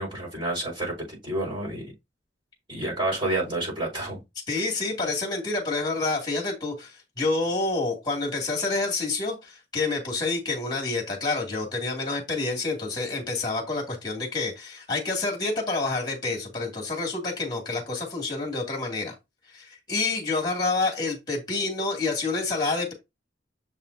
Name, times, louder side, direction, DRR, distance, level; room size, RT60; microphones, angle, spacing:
voice 1, 0.0-1.8 2.7-4.2, right 1 dB, 25° right, 4.5 m, -29 dB
voice 2, 4.5-19.1 19.5-22.9, left 3 dB, 20° left, 2.4 m, -28 dB
7.2 x 5.4 x 2.7 m
head